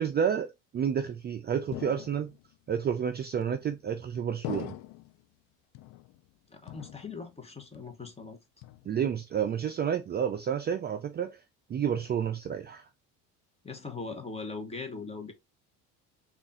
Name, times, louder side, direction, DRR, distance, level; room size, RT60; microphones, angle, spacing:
voice 1, 0.0-2.3 2.7-4.7 8.9-11.4 11.7-12.9, right 8 dB, 30° right, 0.4 m, -30 dB
sound 1, 1.7-2.6 3.4-3.9 4.4-5.2 5.7-6.4 6.7-7.4 7.7-8.2 8.6-9.2, left 15 dB, 65° left, 0.5 m, -43 dB
voice 2, 6.5-8.4 13.6-15.3, left 4 dB, 15° left, 1.0 m, -40 dB
3.5 x 2.5 x 4.0 m
supercardioid pair, 100°, 37 cm